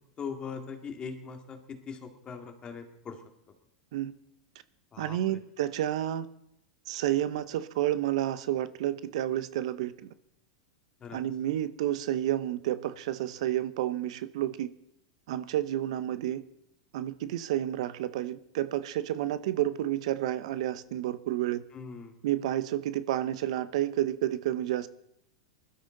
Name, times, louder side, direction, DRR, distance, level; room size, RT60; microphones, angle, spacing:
voice 1, 0.2-3.2 4.9-5.4 11.0-11.2 21.7-22.2, left 6 dB, 25° left, 5 dB, 2.3 m, -41 dB
voice 2, 5.0-6.3 6.9-10.1 11.1-14.7 15.3-16.4 16.9-21.6 22.2-24.9, right 12 dB, 70° right, 14 dB, 0.8 m, -30 dB
20.5 x 12.5 x 4.0 m, 0.77 s
hypercardioid pair, 115°, 3 cm